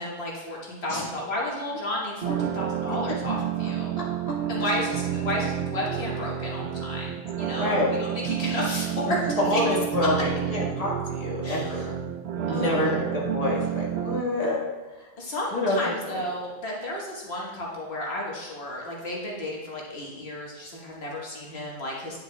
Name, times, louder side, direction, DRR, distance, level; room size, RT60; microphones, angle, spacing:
voice 1, 0.0-4.0 4.5-9.6 11.4-11.7 12.5-13.0 15.2-22.2, left 1 dB, 90° left, -3 dB, 1.7 m, -32 dB
sound 1, 2.2-14.2, right 10 dB, 90° right, 0.8 m, -30 dB
voice 2, 7.6-7.9 9.1-11.9 12.4-14.6 15.5-15.8, left 2 dB, 35° left, -4 dB, 1.5 m, -27 dB
9.3 x 6.5 x 2.3 m, 1.2 s
omnidirectional pair, 1.0 m